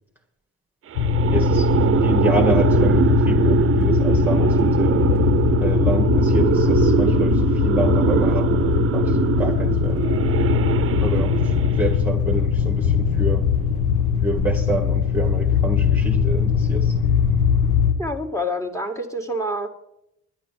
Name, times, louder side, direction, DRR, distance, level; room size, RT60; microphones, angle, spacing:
sound 1, 0.9-17.9, left 6 dB, 85° left, 1.6 m, -20 dB
sound 2, 0.9-12.1, right 8 dB, 45° right, 0.6 m, -22 dB
voice 1, 1.3-5.3 5.6-10.0 11.0-13.4 14.2-17.0, right 2 dB, 5° right, 1 dB, 1.5 m, -28 dB
voice 2, 18.0-19.7, equal, 10° left, 4 dB, 1.9 m, -27 dB
10.5 x 10.5 x 7.4 m, 0.81 s
cardioid pair, 90°, 30 cm